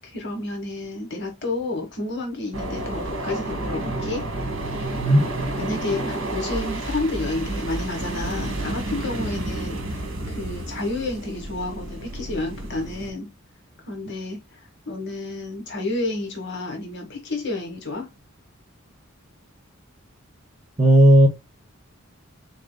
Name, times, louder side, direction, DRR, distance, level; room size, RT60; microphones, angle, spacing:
voice 1, 0.0-4.2 5.6-13.3 13.9-14.6 14.9-18.1, left 2 dB, 55° left, 1.3 m, -30 dB
sound 1, 2.5-13.1, right 2 dB, 60° right, 1.4 m, -30 dB
voice 2, 5.0-5.3 20.8-21.3, equal, 30° right, 0.8 m, -14 dB
4.0 x 3.7 x 2.2 m
head